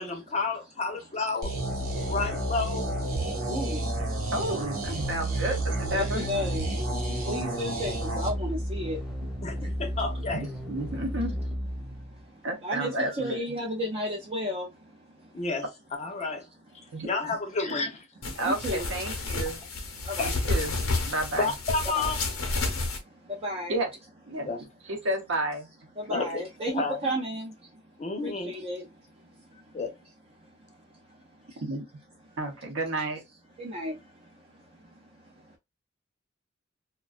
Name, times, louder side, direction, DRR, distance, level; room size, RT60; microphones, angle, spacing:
voice 1, 0.0-1.5 2.1-3.0 4.4-4.6 9.4-10.4 15.3-15.7 16.0-16.4 17.0-18.0 20.2-20.3 21.4-22.2 24.5-24.6 26.1-26.4 26.7-27.0 28.0-28.5 29.7-29.9, left 3 dB, 35° left, 0.5 m, -30 dB
sound 1, 1.4-8.3, right 2 dB, 90° right, 0.9 m, -33 dB
sound 2, 1.6-12.3, equal, 5° right, 0.7 m, -34 dB
voice 2, 3.5-3.9 5.9-6.6 7.3-9.0 12.6-14.7 18.4-18.9 20.2-20.3 21.9-22.1 23.4-23.8 26.1-27.5 28.2-28.8 33.6-34.0, equal, 30° right, 0.4 m, -32 dB
voice 3, 4.3-6.2 10.3-11.3 12.4-13.4 16.9-17.1 18.3-19.6 20.2-21.5 23.7-23.9 24.3-24.5 24.9-25.7 26.1-26.2 31.6-31.9 32.4-33.2, right 1 dB, 65° right, 0.7 m, -31 dB
sound 3, 18.2-23.0, left 3 dB, 85° left, 0.7 m, -30 dB
2.4 x 2.2 x 2.3 m
head